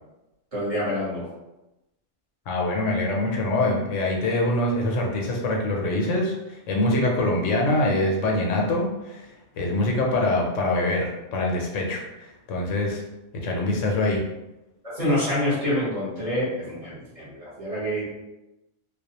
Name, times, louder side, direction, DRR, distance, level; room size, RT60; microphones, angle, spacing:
voice 1, 0.5-1.2 14.8-18.0, left 1 dB, 30° right, -9 dB, 1.0 m, -26 dB
voice 2, 2.5-9.3 9.6-13.0 13.4-14.2, left 2 dB, 80° left, -1 dB, 0.9 m, -24 dB
2.3 x 2.1 x 2.8 m, 0.98 s
omnidirectional pair, 1.3 m